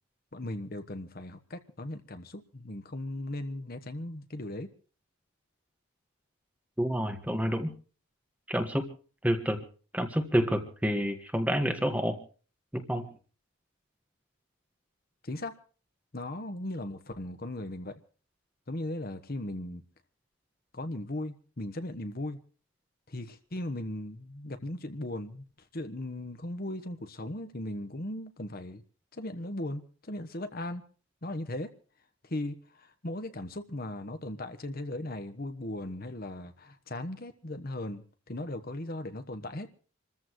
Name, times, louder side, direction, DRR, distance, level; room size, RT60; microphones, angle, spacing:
voice 1, 0.3-4.7 15.2-15.5 16.1-18.0 18.7-19.8 20.7-22.4 23.1-28.8 29.1-30.8 31.2-31.7 32.2-39.7, left 1 dB, 45° left, 1.2 m, -38 dB
voice 2, 6.8-7.7 8.5-8.9 9.2-9.6 9.9-12.2 12.7-13.1, equal, 5° right, 1.6 m, -28 dB
28.0 x 14.0 x 3.1 m
head